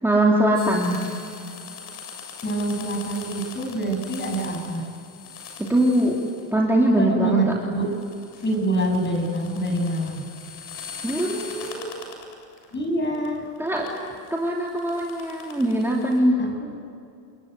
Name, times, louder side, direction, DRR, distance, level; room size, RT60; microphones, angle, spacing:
voice 1, 0.0-1.0 5.6-6.2 6.5-7.4 11.0-11.9 13.6-13.9 14.3-16.4, right 1 dB, 5° right, -3 dB, 3.1 m, -21 dB
sound 1, 0.6-6.7 7.4-12.7 13.0-16.2, left 6 dB, 60° left, 7.7 m, -41 dB
voice 2, 2.4-4.9 6.9-7.9 8.4-10.3 12.7-13.5 16.4-16.7, right 1 dB, 25° left, 3 dB, 7.4 m, -26 dB
29.5 x 21.0 x 9.4 m, 2.4 s
cardioid pair, 135°, 46 cm